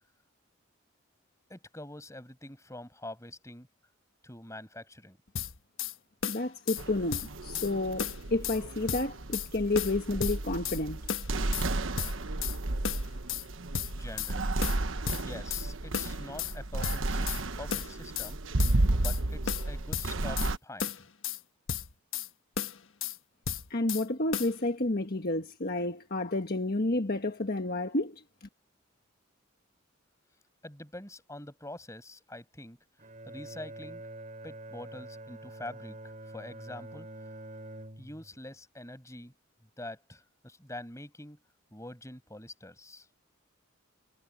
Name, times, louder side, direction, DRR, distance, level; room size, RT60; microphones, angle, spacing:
voice 1, 1.5-3.7 4.2-5.2 14.0-14.5 15.2-18.4 19.0-21.1 30.6-32.8 33.3-34.0 34.4-37.1 38.0-39.3 39.8-41.4 41.7-43.1, left 1 dB, 15° left, 6.0 m, -45 dB
sound 1, 5.4-5.9 6.2-6.8 7.1-7.7 8.0-8.6 8.9-9.5 9.8-10.8 11.1-11.7 12.0-12.6 12.8-13.5 13.7-14.3 14.6-15.7 15.9-16.5 16.8-17.4 17.7-18.3 18.6-19.2 19.5-20.5 20.8-21.4 21.7-22.3 22.6-23.2 23.5-24.1 24.3-24.5, left 8 dB, 70° left, 1.3 m, -34 dB
voice 2, 6.3-11.0 23.7-28.2, left 2 dB, 45° left, 1.4 m, -30 dB
sound 2, 6.8-20.6, right 2 dB, 70° right, 1.2 m, -32 dB
Bowed string instrument, 33.0-38.5, right 1 dB, 35° right, 5.0 m, -45 dB
head